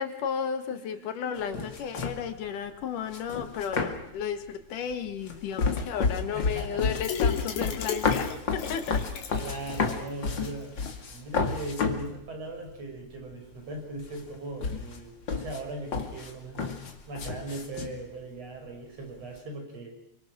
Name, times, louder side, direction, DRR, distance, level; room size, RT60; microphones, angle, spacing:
voice 1, 0.0-9.0, left 7 dB, 90° left, 8 dB, 3.3 m, -33 dB
voice 2, 0.7-1.7 6.3-6.9 9.4-10.7 11.1-16.7 17.1-19.9, right 2 dB, 50° right, 2 dB, 6.9 m, -39 dB
sound 1, 1.4-2.3 3.1-4.2 4.9-12.1 12.7-12.8 13.0-13.8 14.0-18.0, left 4 dB, 40° left, 2.7 m, -31 dB
sound 2, 7.0-10.1 10.4-10.5 10.9-11.0, left 7 dB, 65° left, 3.5 m, -35 dB
29.0 x 24.5 x 6.3 m, 0.76 s
omnidirectional pair, 3.6 m